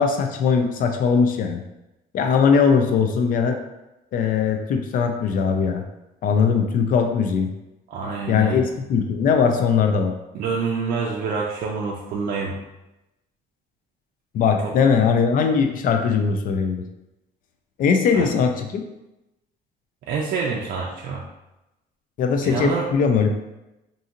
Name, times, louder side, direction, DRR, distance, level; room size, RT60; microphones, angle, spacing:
voice 1, 0.0-1.6 2.1-3.6 4.1-5.8 6.2-7.5 8.3-10.1 14.3-16.8 17.8-18.8 22.2-23.3, left 6 dB, 55° left, 5 dB, 0.4 m, -20 dB
voice 2, 7.9-8.6 10.3-12.6 14.6-14.7 18.1-18.3 20.1-21.3 22.4-22.9, right 5 dB, 65° right, -2 dB, 0.4 m, -27 dB
2.8 x 2.6 x 2.5 m, 0.95 s
cardioid pair, 110°, 17 cm